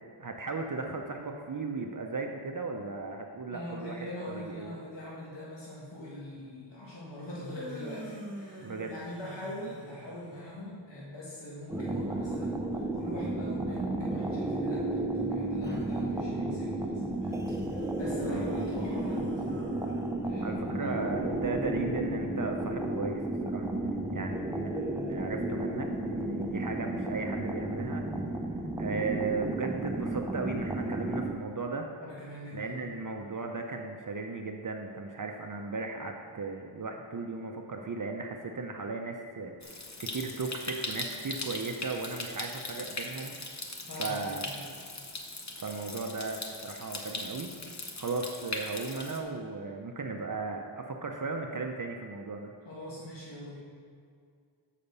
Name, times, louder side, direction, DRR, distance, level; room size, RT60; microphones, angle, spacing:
voice 1, 0.2-4.1 4.3-4.7 8.6-8.9 18.2-18.4 20.4-23.7 24.1-28.0 28.8-31.9 32.5-43.3 44.0-44.4 45.6-47.5 48.0-52.5, right 4 dB, 45° right, 3 dB, 0.6 m, -36 dB
voice 2, 3.5-19.2 20.2-20.9 32.0-32.9 43.9-44.7 52.7-53.6, left 1 dB, 65° left, -7 dB, 1.6 m, -42 dB
sound 1, 7.3-10.5 17.7-20.6, right 1 dB, 25° right, 1.3 m, -45 dB
sound 2, 11.7-31.3, right 1 dB, 5° right, 0.6 m, -33 dB
Stream, 39.6-49.2, left 2 dB, 40° left, 0.9 m, -40 dB
7.0 x 5.0 x 6.7 m, 2.2 s
wide cardioid pair, 90°, 46 cm